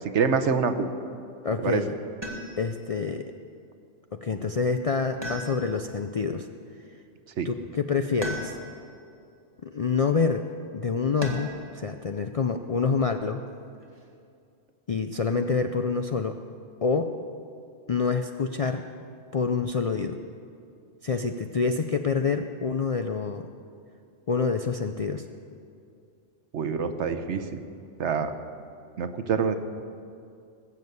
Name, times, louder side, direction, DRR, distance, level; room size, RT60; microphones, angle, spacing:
voice 1, 0.0-0.9 1.6-1.8 7.4-7.5 26.5-27.6 28.0-28.3 29.0-29.6, right 6 dB, 70° right, 9 dB, 1.1 m, -26 dB
voice 2, 1.4-1.9 2.6-3.3 4.1-6.5 7.4-8.5 9.6-10.4 10.7-13.4 14.9-16.4 16.8-17.1 17.9-18.8 19.3-20.2 21.0-23.5 24.3-25.2, left 5 dB, 50° left, 6 dB, 0.4 m, -27 dB
sound 1, 2.2-2.9 5.2-6.0 8.2-8.9 11.2-11.7 13.4-14.0, right 1 dB, 20° right, 1.8 m, -37 dB
20.0 x 7.4 x 8.0 m, 2.4 s
omnidirectional pair, 1.2 m